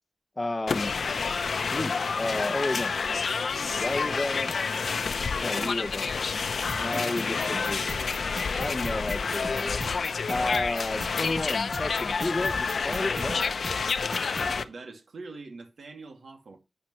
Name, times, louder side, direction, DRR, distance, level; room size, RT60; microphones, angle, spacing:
voice 1, 0.4-1.0 1.5-2.9 3.8-4.6 5.4-6.1 6.8-8.0 8.5-9.8 10.3-13.5, left 2 dB, 25° left, 0.7 m, -32 dB
sound 1, 0.7-14.6, left 5 dB, 80° left, 0.7 m, -29 dB
voice 2, 5.5-5.9 6.9-8.0 14.4-16.6, right 3 dB, 85° right, 2.5 m, -44 dB
sound 2, 6.7-14.5, right 1 dB, 35° right, 2.2 m, -38 dB
12.0 x 8.8 x 3.2 m
wide cardioid pair, 75°, 0 cm